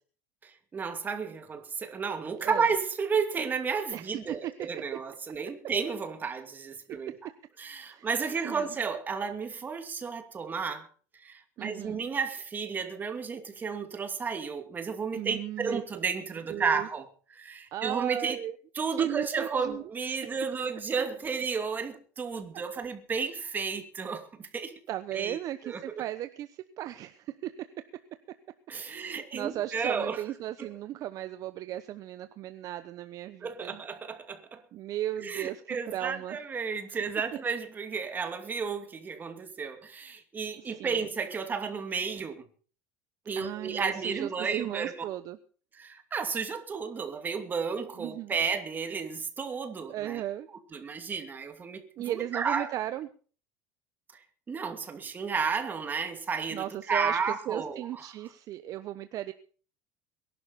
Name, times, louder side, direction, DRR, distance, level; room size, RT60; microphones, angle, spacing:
voice 1, 0.4-7.2 7.6-10.9 11.1-17.1 17.3-18.4 18.7-24.7 25.1-25.4 25.6-26.0 28.7-30.2 30.6-30.7 33.4-34.6 35.2-42.5 43.3-44.9 45.7-50.2 50.7-51.8 52.1-52.7 54.1-54.2 54.5-58.1, right 5 dB, 25° right, 2.6 m, -32 dB
voice 2, 3.9-4.5 6.3-6.4 6.9-7.1 7.8-8.1 8.4-8.7 11.6-12.0 15.1-15.8 16.5-16.9 17.7-18.6 19.0-19.8 20.2-20.3 24.9-27.8 28.9-33.8 34.7-36.4 40.6-41.1 43.4-45.4 48.0-48.3 49.9-50.5 52.0-53.1 56.5-59.3, right 13 dB, 45° right, 0.9 m, -36 dB
22.0 x 11.5 x 4.2 m
supercardioid pair, 130°, 8 cm